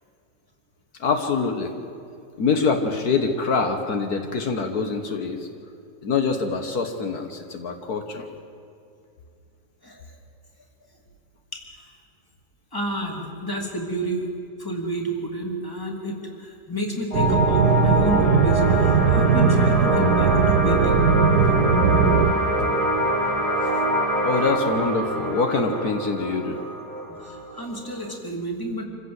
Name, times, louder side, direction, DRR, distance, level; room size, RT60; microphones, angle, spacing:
voice 1, 1.0-1.7 2.4-5.5 6.0-8.3 22.6-22.7 24.2-26.6, left 4 dB, 70° left, 5 dB, 1.8 m, -24 dB
voice 2, 9.8-10.1 11.5-11.6 12.7-14.3 14.6-21.0 23.6-23.7 27.0-28.9, right 1 dB, 15° left, 2 dB, 2.4 m, -30 dB
sound 1, 17.1-28.2, right 1 dB, 20° right, 2.0 m, -25 dB
sound 2, 17.1-22.3, right 6 dB, 80° right, 1.5 m, -19 dB
26.0 x 15.5 x 7.9 m, 2.5 s
omnidirectional pair, 1.7 m